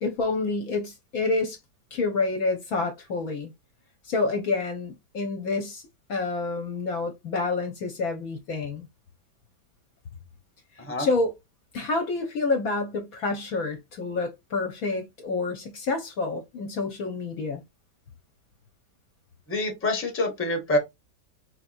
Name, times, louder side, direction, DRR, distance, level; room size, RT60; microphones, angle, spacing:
voice 1, 0.0-1.6 1.9-3.5 4.0-5.8 6.1-8.9 11.0-11.3 11.7-17.6, left 3 dB, 65° left, 1.0 m, -28 dB
voice 2, 19.5-20.8, left 2 dB, 10° left, 0.7 m, -26 dB
4.7 x 2.8 x 2.5 m
omnidirectional pair, 1.9 m